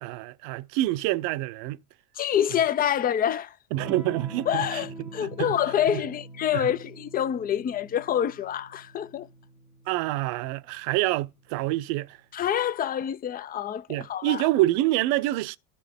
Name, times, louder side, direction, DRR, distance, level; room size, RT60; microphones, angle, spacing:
voice 1, 0.0-1.8 3.7-4.8 5.2-5.5 5.9-6.0 6.5-6.7 9.9-12.2 13.9-15.6, right 16 dB, 55° right, 0.7 m, -27 dB
voice 2, 2.1-3.6 4.5-9.3 12.3-14.5, left 10 dB, 20° left, 0.4 m, -27 dB
Electric guitar / Strum, 3.7-12.0, right 1 dB, 85° left, 1.9 m, -45 dB
13.0 x 4.4 x 3.5 m
hypercardioid pair, 80°, 43 cm